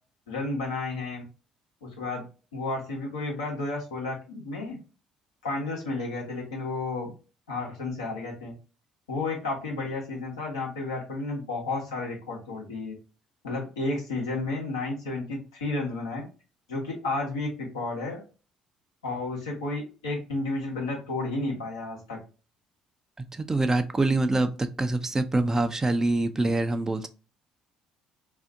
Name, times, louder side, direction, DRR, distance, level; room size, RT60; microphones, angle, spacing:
voice 1, 0.3-1.2 1.8-2.2 2.5-4.8 5.4-7.1 7.5-8.5 9.1-12.9 13.4-16.2 16.7-18.2 19.0-22.2, left 2 dB, 85° left, 1.0 m, -32 dB
voice 2, 23.2-27.1, right 2 dB, 20° right, 0.4 m, -25 dB
2.6 x 2.4 x 3.5 m
hypercardioid pair, 55°, 2 cm